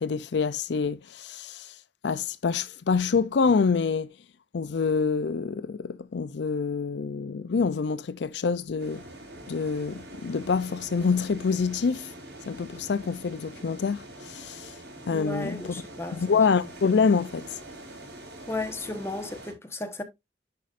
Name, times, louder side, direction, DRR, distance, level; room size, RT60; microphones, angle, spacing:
voice 1, 0.0-1.7 2.0-4.1 4.5-9.0 9.5-12.1 12.5-14.8 15.1-15.6 16.2-17.6, left 5 dB, 80° left, 0.4 m, -26 dB
sound 1, 8.8-19.5, right 1 dB, 75° right, 4.3 m, -44 dB
voice 2, 15.1-16.2 18.5-20.0, left 2 dB, 15° left, 1.2 m, -34 dB
10.5 x 5.3 x 2.5 m
head